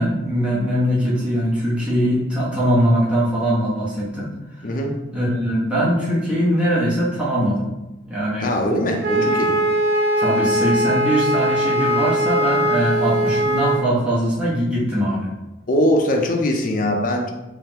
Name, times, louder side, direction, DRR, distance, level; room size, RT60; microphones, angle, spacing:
voice 1, 0.0-4.3 5.1-7.7 8.1-8.5 9.1-9.6 10.2-15.3, equal, 5° right, -8 dB, 1.0 m, -21 dB
voice 2, 4.6-4.9 8.4-9.5 15.7-17.3, equal, 45° left, 2 dB, 0.5 m, -21 dB
Wind instrument woodwind instrument, 9.0-13.8, right 1 dB, 50° right, 0.6 m, -20 dB
3.7 x 3.2 x 2.9 m, 1.0 s
head